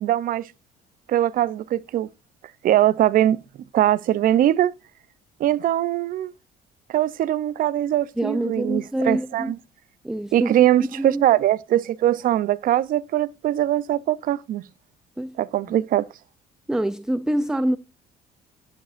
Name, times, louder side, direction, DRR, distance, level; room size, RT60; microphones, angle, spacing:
voice 1, 0.0-0.5 1.1-2.1 2.6-3.4 3.7-4.7 5.4-6.3 6.9-9.6 10.3-14.6 15.4-16.0, right 12 dB, 55° right, 0.6 m, -21 dB
voice 2, 8.2-9.5 10.0-10.5 10.9-11.2 15.2-15.3 15.7-15.8 16.7-17.8, right 1 dB, 5° right, 0.4 m, -25 dB
11.5 x 7.7 x 2.5 m
cardioid pair, 110°, 17 cm